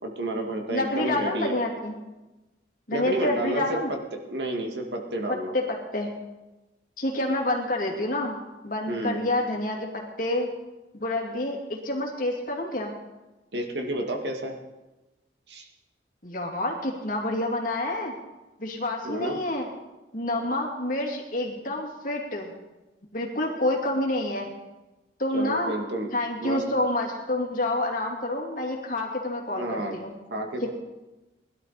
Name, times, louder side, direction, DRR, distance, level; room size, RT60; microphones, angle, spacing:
voice 1, 0.0-1.6 2.9-4.0 4.3-5.6 8.9-9.3 13.5-14.6 15.5-15.7 19.0-19.4 25.3-26.1 26.4-26.6 29.5-29.9 30.3-30.7, right 1 dB, 70° right, 2 dB, 2.0 m, -30 dB
voice 2, 0.7-1.9 2.9-3.9 5.5-6.1 7.0-8.4 8.6-10.5 10.9-12.9 16.2-18.1 18.6-19.7 20.1-22.5 23.1-24.5 25.2-25.7 26.1-30.1 30.6-30.7, left 1 dB, 50° left, 0 dB, 2.7 m, -28 dB
20.5 x 12.5 x 4.2 m, 1.1 s
head